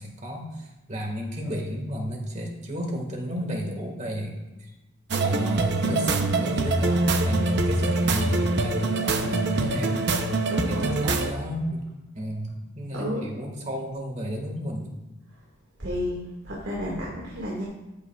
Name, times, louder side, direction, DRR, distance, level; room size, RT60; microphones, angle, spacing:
voice 1, 0.0-4.7 5.2-10.1 10.7-11.9 12.1-14.9, equal, 35° right, 1 dB, 1.8 m, -32 dB
sound 1, 5.1-11.3, right 2 dB, 55° right, 0.8 m, -24 dB
voice 2, 10.5-11.2 12.9-13.3 15.8-17.6, equal, 70° right, -4 dB, 2.0 m, -32 dB
13.5 x 9.0 x 2.4 m, 1.1 s
head